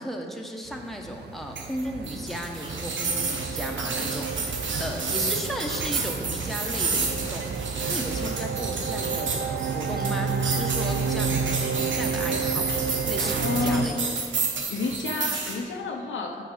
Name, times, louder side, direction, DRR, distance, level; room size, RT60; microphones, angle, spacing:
voice 1, 0.0-12.7 13.1-14.0, equal, ahead, 1 dB, 1.0 m, -35 dB
sound 1, 0.7-13.9, right 5 dB, 60° right, 0.5 m, -31 dB
sound 2, 1.6-15.6, right 4 dB, 80° right, 0.9 m, -30 dB
voice 2, 13.4-14.1 14.7-16.4, left 3 dB, 90° left, 2 dB, 0.7 m, -29 dB
6.0 x 4.7 x 5.9 m, 2.2 s
cardioid pair, 50°, 19 cm